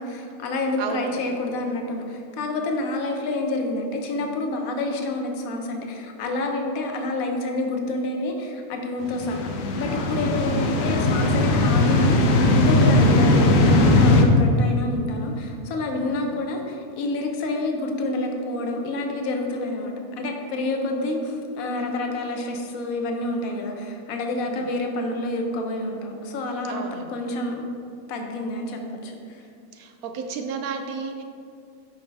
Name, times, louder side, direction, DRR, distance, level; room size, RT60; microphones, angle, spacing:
voice 1, 0.0-9.5 9.7-27.6 28.1-29.4, left 2 dB, 60° left, 3 dB, 1.1 m, -28 dB
voice 2, 0.8-1.5 10.4-10.7 16.0-16.3 24.5-24.7 26.7-27.2 29.7-31.2, right 5 dB, 70° right, 5 dB, 0.9 m, -34 dB
sound 1, 9.1-14.2, left 2 dB, 85° left, 1.3 m, -19 dB
8.5 x 5.6 x 3.4 m, 2.4 s
omnidirectional pair, 1.8 m